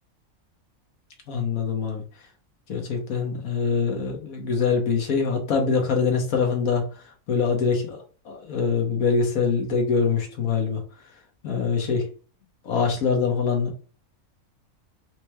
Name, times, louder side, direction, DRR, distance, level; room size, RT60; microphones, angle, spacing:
voice 1, 1.3-2.0 2.7-6.8 7.3-10.8 11.4-12.1 12.6-13.7, left 5 dB, 75° left, 1 dB, 1.4 m, -24 dB
4.2 x 3.0 x 2.2 m, 0.39 s
omnidirectional pair, 1.5 m